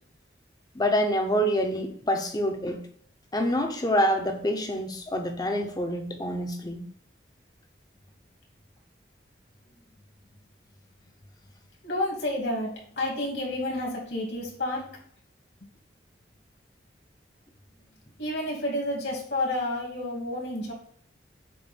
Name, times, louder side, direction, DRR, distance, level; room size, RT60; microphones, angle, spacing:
voice 1, 0.7-2.8 3.3-6.8, equal, 20° left, 0.8 m, -26 dB
voice 2, 11.8-14.8 15.6-15.7 18.2-20.7, left 1 dB, 70° left, 2.6 m, -30 dB
7.7 x 2.6 x 5.3 m
head